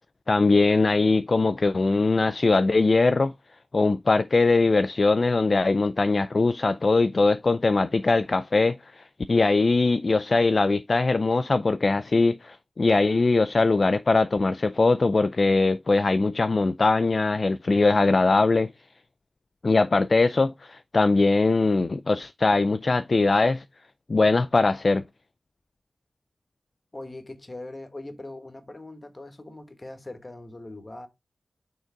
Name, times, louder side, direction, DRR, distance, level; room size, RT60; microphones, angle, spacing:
voice 1, 0.3-3.3 3.7-18.7 19.6-23.6 24.1-25.0, left 3 dB, 40° left, 0.4 m, -21 dB
voice 2, 26.9-31.1, left 2 dB, 25° left, 1.3 m, -41 dB
6.4 x 3.9 x 4.5 m
wide cardioid pair, 125°, 0 cm